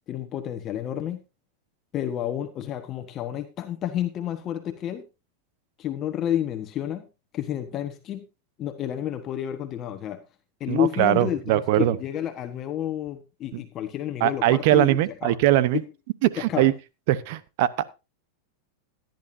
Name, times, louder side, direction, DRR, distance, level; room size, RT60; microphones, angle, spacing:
voice 1, 0.1-1.2 1.9-5.0 5.8-7.0 7.3-8.2 8.6-10.2 10.6-15.4 16.5-16.7, left 11 dB, 35° left, 8 dB, 1.4 m, -30 dB
voice 2, 10.7-12.0 13.5-13.6 14.2-15.8 16.2-16.7 17.1-17.9, right 14 dB, 60° right, 17 dB, 0.9 m, -21 dB
17.0 x 10.5 x 2.7 m, 0.28 s
hypercardioid pair, 110°, 0 cm